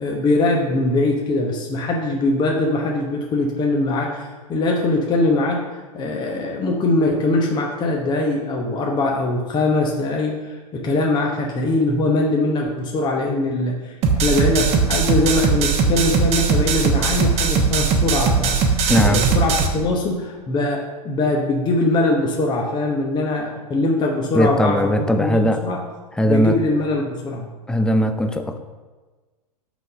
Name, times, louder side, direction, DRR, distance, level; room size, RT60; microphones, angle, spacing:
voice 1, 0.0-5.6 5.9-25.8 26.2-27.5, left 2 dB, 20° left, 0 dB, 1.0 m, -22 dB
sound 1, 14.0-19.7, right 5 dB, 30° right, 1.0 m, -19 dB
voice 2, 18.9-19.3 24.3-25.6 26.2-26.6 27.7-28.6, equal, 5° left, 7 dB, 0.5 m, -19 dB
6.1 x 5.4 x 6.5 m, 1.3 s
figure-of-eight pair, 100°, 21 cm